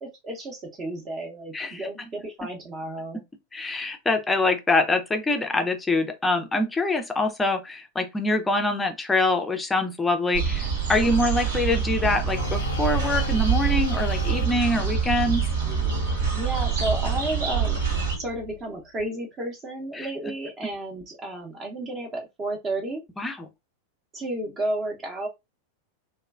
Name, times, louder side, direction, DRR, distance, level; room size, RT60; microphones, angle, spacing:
voice 1, 0.0-3.2 16.3-17.8 18.2-23.0 24.1-25.3, right 1 dB, 25° right, 0.8 m, -32 dB
voice 2, 1.5-1.9 3.5-15.5 19.9-20.1 23.2-23.4, left 2 dB, 10° left, 0.6 m, -24 dB
sound 1, 10.3-18.2, right 6 dB, 60° right, 1.2 m, -25 dB
sound 2, 12.3-19.0, left 8 dB, 75° left, 0.5 m, -38 dB
2.9 x 2.2 x 2.4 m
figure-of-eight pair, 90°, 0 cm